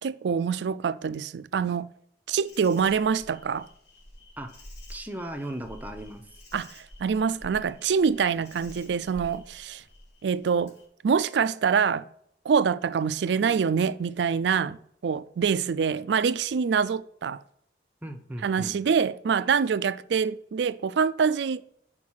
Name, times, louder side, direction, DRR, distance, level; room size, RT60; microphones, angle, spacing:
voice 1, 0.0-1.9 2.3-3.7 6.5-9.8 10.2-10.7 11.0-12.0 12.5-14.8 15.0-17.4 18.4-21.6, right 6 dB, 75° right, 0.4 m, -25 dB
Insect, 2.4-10.9, left 1 dB, 80° left, 2.0 m, -49 dB
voice 2, 4.9-6.2 18.0-18.8, right 1 dB, 10° right, 0.6 m, -37 dB
5.7 x 4.7 x 6.2 m
head